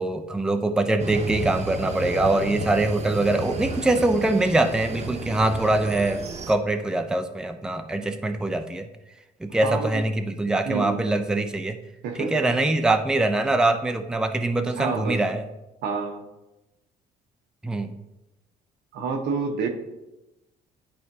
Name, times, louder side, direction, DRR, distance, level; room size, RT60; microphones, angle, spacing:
voice 1, 0.0-6.2 6.5-8.9 9.4-11.8 12.2-15.5 17.6-17.9, right 2 dB, 5° right, 6 dB, 0.4 m, -23 dB
sound 1, 1.0-6.6, right 3 dB, 40° right, 0.9 m, -33 dB
voice 2, 9.6-10.0 10.6-11.0 12.0-12.4 14.8-15.2 15.8-16.2 18.9-19.7, right 5 dB, 85° right, 4 dB, 1.0 m, -28 dB
11.0 x 4.3 x 2.7 m, 0.99 s
cardioid pair, 110°, 17 cm